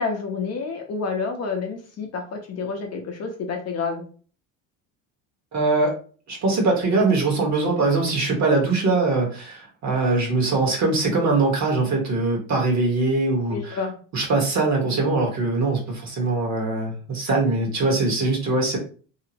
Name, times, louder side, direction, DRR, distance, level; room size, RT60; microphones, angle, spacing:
voice 1, 0.0-4.0 13.5-13.9, left 4 dB, 40° left, 3 dB, 0.6 m, -29 dB
voice 2, 5.5-5.9 6.3-13.8 14.1-18.8, right 3 dB, 45° right, -1 dB, 1.1 m, -22 dB
2.7 x 2.0 x 2.7 m, 0.40 s
cardioid pair, 115°, 38 cm